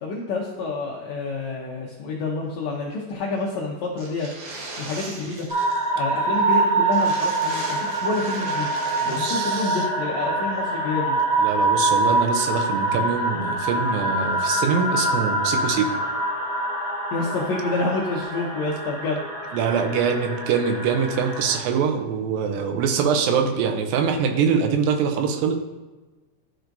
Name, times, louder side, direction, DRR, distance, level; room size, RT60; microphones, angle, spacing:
voice 1, 0.0-4.3 4.8-5.5 6.0-8.7 9.1-11.2 17.1-19.3, left 3 dB, 80° left, -3 dB, 1.6 m, -28 dB
sound 1, 4.0-5.9 6.2-6.3 6.5-6.6 6.9-9.6, right 3 dB, 60° right, 1.9 m, -38 dB
sound 2, 5.5-21.5, right 2 dB, 20° left, 1.1 m, -25 dB
voice 2, 9.0-9.8 10.2-10.4 11.4-15.9 19.5-25.6, right 6 dB, 80° right, 5 dB, 2.4 m, -24 dB
12.0 x 4.6 x 2.6 m, 1.2 s
omnidirectional pair, 4.2 m